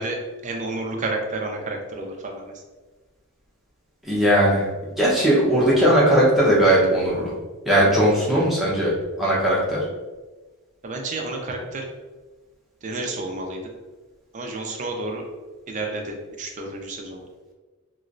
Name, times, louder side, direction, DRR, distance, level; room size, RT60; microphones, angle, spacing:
voice 1, 0.0-2.5 8.3-8.4 10.8-11.9 12.8-13.6 14.3-15.3 15.7-17.3, right 2 dB, 35° right, 2 dB, 0.5 m, -30 dB
voice 2, 4.0-4.7 5.0-7.3 7.6-8.9 9.2-9.8, right 1 dB, ahead, -8 dB, 0.8 m, -18 dB
3.1 x 3.0 x 2.5 m, 1.3 s
head